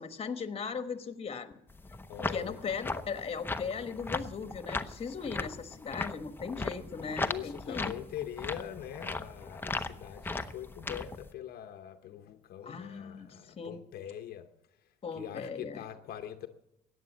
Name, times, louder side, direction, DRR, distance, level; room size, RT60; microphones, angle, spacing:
voice 1, 0.0-1.5 2.3-7.9 12.6-13.8 15.0-15.8, left 5 dB, 35° left, 1.3 m, -38 dB
sound 1, 1.7-11.3, left 3 dB, 10° left, 0.7 m, -38 dB
voice 2, 2.1-2.6 7.0-14.5 14.8-16.5, left 11 dB, 65° left, 0.8 m, -43 dB
14.0 x 9.4 x 7.2 m
cardioid pair, 110°, 17 cm